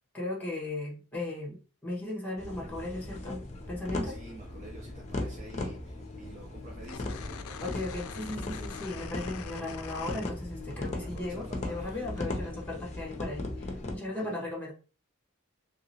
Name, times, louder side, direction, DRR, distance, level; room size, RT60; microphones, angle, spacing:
voice 1, 0.1-3.4 3.7-4.2 7.6-14.7, left 2 dB, 10° left, -3 dB, 1.2 m, -37 dB
sound 1, 2.4-14.0, left 2 dB, 35° left, 0.6 m, -38 dB
voice 2, 4.0-7.8 11.1-12.3 14.1-14.5, right 2 dB, 35° right, 0 dB, 0.5 m, -49 dB
sound 2, 6.8-10.9 11.2-12.2, left 7 dB, 80° left, 0.4 m, -44 dB
3.0 x 2.9 x 2.7 m, 0.36 s
head